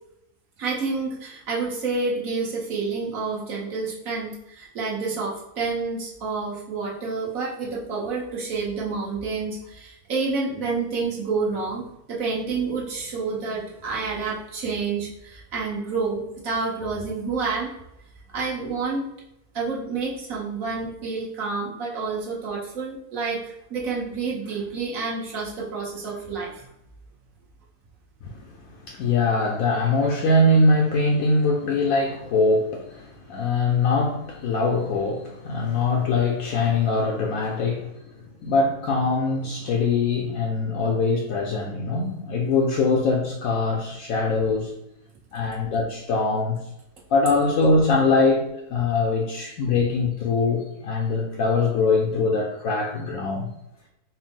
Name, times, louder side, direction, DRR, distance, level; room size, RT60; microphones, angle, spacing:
voice 1, 0.6-17.7 18.3-19.1 19.5-26.7, right 4 dB, 60° right, 1.3 m, -29 dB
voice 2, 28.2-44.7 45.3-46.6 47.1-53.5, left 3 dB, 70° left, 0.9 m, -22 dB
4.4 x 2.0 x 3.6 m
omnidirectional pair, 1.7 m